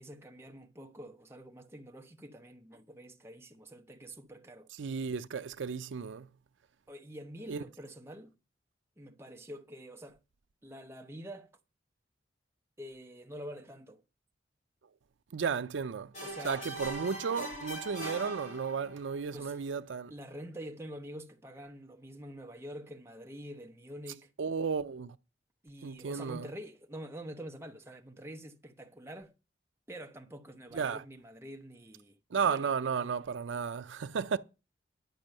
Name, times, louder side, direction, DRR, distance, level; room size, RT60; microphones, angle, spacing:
voice 1, 0.0-4.7 6.9-8.3 9.0-10.2 10.6-11.6 12.8-14.0 16.2-16.7 19.3-19.6 20.1-24.3 25.6-29.3 29.9-32.1 32.4-33.1, equal, 15° right, 0.8 m, -46 dB
voice 2, 4.8-6.3 7.5-7.6 15.3-16.1 16.4-20.1 24.4-25.2 25.8-26.5 30.7-31.0 32.3-34.4, right 6 dB, 75° right, 0.5 m, -33 dB
sound 1, 16.1-19.1, right 1 dB, 40° left, 2.5 m, -41 dB
10.5 x 6.0 x 6.5 m
head